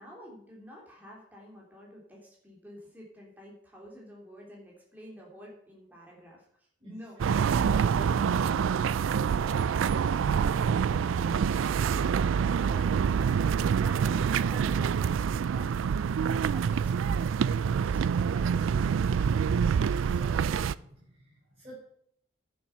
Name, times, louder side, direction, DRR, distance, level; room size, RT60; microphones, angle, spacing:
voice 1, 0.0-6.4 6.8-15.7 16.5-17.2 17.8-18.2, equal, 10° right, -3 dB, 3.0 m, -49 dB
sound 1, 7.2-20.7, right 7 dB, 90° right, 0.3 m, -26 dB
voice 2, 20.0-21.8, right 1 dB, 30° right, -9 dB, 5.2 m, -50 dB
10.5 x 7.2 x 5.8 m, 0.70 s
head